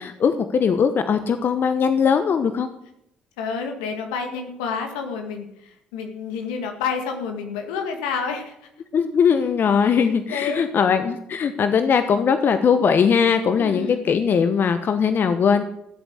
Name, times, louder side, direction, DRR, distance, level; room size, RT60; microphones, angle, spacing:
voice 1, 0.0-2.7 8.9-15.6, left 6 dB, 55° left, 9 dB, 1.1 m, -20 dB
voice 2, 3.4-8.5 9.8-10.0 10.3-10.7 13.6-14.0, left 5 dB, 85° left, 4 dB, 2.0 m, -29 dB
15.0 x 8.1 x 8.1 m, 0.77 s
hypercardioid pair, 50°, 4 cm